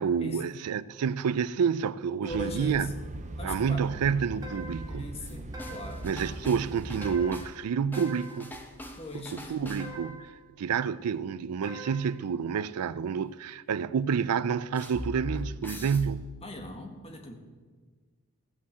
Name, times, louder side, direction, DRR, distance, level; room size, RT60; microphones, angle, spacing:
voice 1, 0.0-2.9 3.4-5.1 6.0-8.5 9.1-9.2 9.5-10.3 10.6-16.3, right 6 dB, 85° right, 0.4 m, -29 dB
voice 2, 2.2-2.9 3.4-3.9 4.9-6.1 8.9-9.5 16.4-17.3, left 1 dB, 25° left, 1.5 m, -41 dB
sound 1, 2.3-7.4, right 1 dB, 35° right, 0.6 m, -40 dB
sound 2, 4.4-5.0 5.5-6.1 7.0-7.5 7.9-8.5 9.8-10.3 11.6-12.2, right 1 dB, 15° right, 1.9 m, -44 dB
sound 3, 5.3-7.7 7.9-10.1 14.7-16.6, equal, 10° left, 1.0 m, -42 dB
16.0 x 5.6 x 7.8 m
head